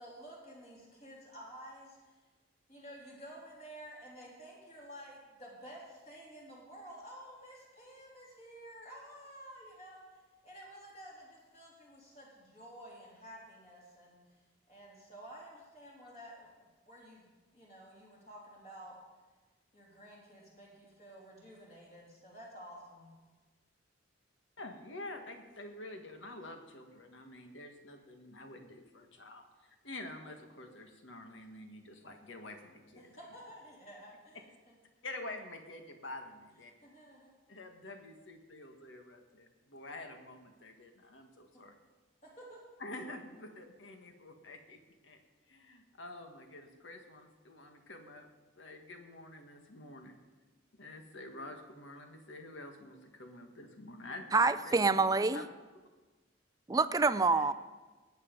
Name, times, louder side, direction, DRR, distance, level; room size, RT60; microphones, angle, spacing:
voice 1, 0.0-2.1 2.7-10.1 10.4-14.2 14.7-17.3 17.5-19.0 19.7-23.1 33.0-34.5 36.8-37.3 42.2-42.6, right 1 dB, 35° left, -4 dB, 3.5 m, -51 dB
voice 2, 24.6-29.4 29.7-33.2 34.3-34.4 35.0-36.7 37.5-41.7 42.8-45.2 45.5-48.3 48.5-50.1 50.8-55.5 57.0-57.5, left 2 dB, 75° left, 5 dB, 1.7 m, -48 dB
voice 3, 54.3-55.4 56.7-57.5, right 4 dB, 20° right, 14 dB, 0.4 m, -27 dB
19.0 x 8.4 x 5.3 m, 1.3 s
head